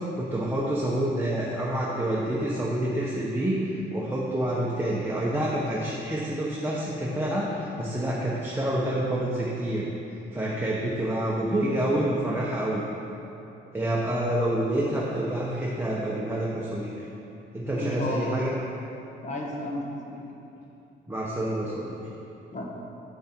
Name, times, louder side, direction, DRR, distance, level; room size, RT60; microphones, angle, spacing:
voice 1, 0.2-9.9 10.3-12.8 13.7-17.1 17.5-18.5 21.1-21.9, right 1 dB, 10° right, -6 dB, 1.0 m, -28 dB
voice 2, 17.7-18.2 19.2-20.2 22.5-22.6, left 1 dB, 35° left, -1 dB, 1.5 m, -32 dB
7.9 x 6.5 x 4.5 m, 2.8 s
cardioid pair, 90°, 20 cm